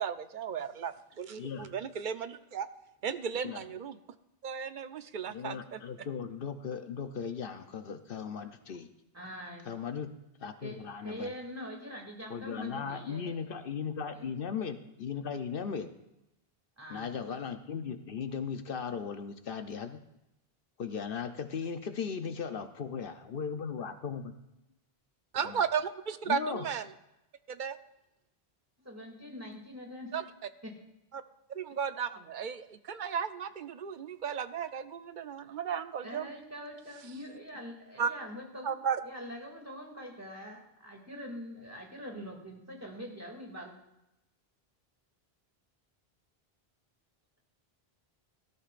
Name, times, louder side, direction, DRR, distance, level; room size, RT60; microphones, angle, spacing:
voice 1, 0.0-2.7 3.0-4.0 4.4-5.8 25.3-26.9 27.5-27.8 30.1-30.2 31.1-31.2 31.5-36.3 38.0-38.1 38.6-39.0, right 7 dB, 55° right, 10 dB, 0.8 m, -35 dB
voice 2, 1.4-1.7 3.4-3.6 5.3-8.9 9.7-10.1 10.4-11.3 12.3-15.9 16.9-20.0 20.8-24.3 25.4-25.6 26.3-26.7, left 6 dB, 65° left, 8 dB, 0.9 m, -37 dB
voice 3, 9.1-9.7 10.6-13.5 14.1-14.3 16.8-17.2 28.8-30.1 30.6-30.8 36.0-38.7 39.0-43.7, equal, 15° right, 0 dB, 2.4 m, -44 dB
18.0 x 13.5 x 2.5 m, 0.92 s
omnidirectional pair, 1.1 m